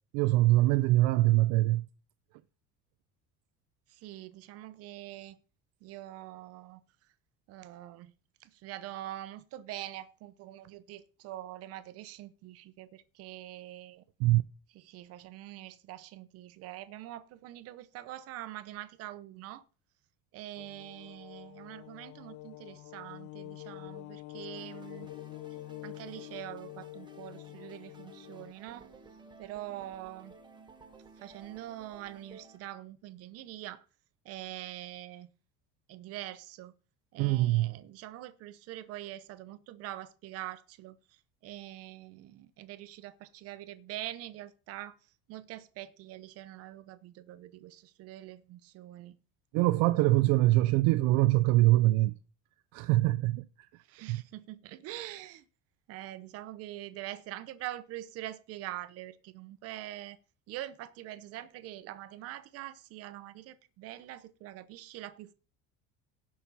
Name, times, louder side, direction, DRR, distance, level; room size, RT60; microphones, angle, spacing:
voice 1, 0.1-1.9 14.2-14.4 37.2-37.7 49.5-52.2 52.7-53.4 54.1-54.2, right 17 dB, 75° right, 0.6 m, -24 dB
voice 2, 3.9-5.4 5.8-6.8 7.5-8.1 8.4-14.0 14.7-19.6 20.3-25.1 25.8-28.9 29.4-30.3 31.2-33.8 34.2-35.3 35.9-36.7 37.1-45.0 45.3-49.2 53.8-55.5 55.9-60.2 60.5-65.3, right 14 dB, 50° right, 0.9 m, -44 dB
sound 1, 20.6-28.5, left 19 dB, 60° left, 0.5 m, -46 dB
sound 2, 24.6-32.6, right 4 dB, 15° right, 1.4 m, -55 dB
17.0 x 6.2 x 4.1 m
cardioid pair, 175°, 31 cm